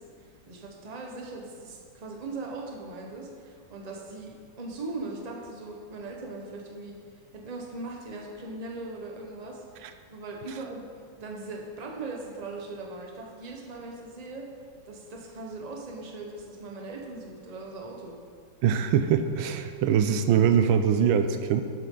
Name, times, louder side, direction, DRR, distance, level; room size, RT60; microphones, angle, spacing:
voice 1, 0.0-9.6 10.1-10.8 11.2-14.5 14.8-18.2, right 3 dB, 25° right, 0 dB, 1.0 m, -39 dB
voice 2, 18.6-21.6, right 8 dB, 85° right, 8 dB, 1.4 m, -23 dB
12.0 x 8.0 x 3.9 m, 2.2 s
omnidirectional pair, 2.2 m